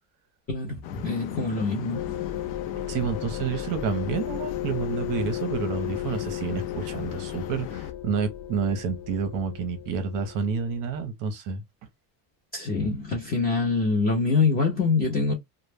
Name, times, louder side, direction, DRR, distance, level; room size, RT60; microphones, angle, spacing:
voice 1, 0.5-2.3 12.5-15.3, left 4 dB, 20° left, 0.4 m, -25 dB
sound 1, 0.8-7.9, left 9 dB, 85° left, 0.6 m, -38 dB
sound 2, 1.9-11.1, left 13 dB, 65° left, 1.1 m, -35 dB
voice 2, 2.9-11.6, right 6 dB, 40° right, 0.6 m, -29 dB
2.1 x 2.0 x 3.2 m
cardioid pair, 160°, 49 cm